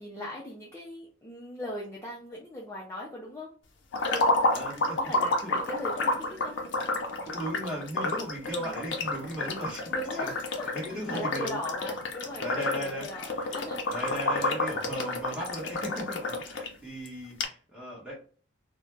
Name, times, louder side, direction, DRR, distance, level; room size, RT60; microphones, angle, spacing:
voice 1, 0.0-3.5 4.9-6.7 8.6-8.8 9.9-13.8, left 1 dB, 15° left, -5 dB, 0.5 m, -39 dB
sound 1, 3.9-16.7 17.0-17.1 17.4-17.5, left 2 dB, 75° left, 0.5 m, -30 dB
voice 2, 4.5-5.0 5.4-5.6 7.3-10.3 10.6-11.6 12.4-13.4 13.9-18.2, equal, 5° right, -5 dB, 1.1 m, -37 dB
2.5 x 2.1 x 3.2 m, 0.41 s
head